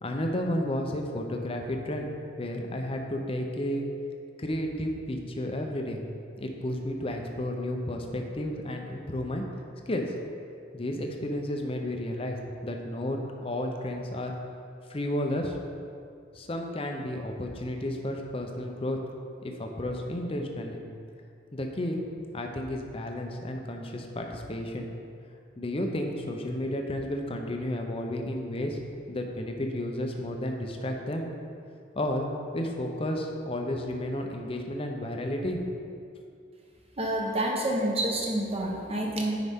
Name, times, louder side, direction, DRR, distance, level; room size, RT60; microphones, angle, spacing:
voice 1, 0.0-2.1 2.4-3.8 4.4-6.0 6.4-9.4 9.9-10.1 10.7-12.4 12.6-14.4 14.9-15.6 16.3-19.0 19.4-20.8 21.5-22.0 22.3-24.9 25.6-28.8 29.1-31.3 32.0-32.3 32.5-35.6, left 1 dB, 30° left, 3 dB, 0.6 m, -32 dB
voice 2, 37.0-39.4, right 1 dB, 30° right, -1 dB, 1.0 m, -28 dB
9.6 x 4.8 x 3.6 m, 2.4 s
head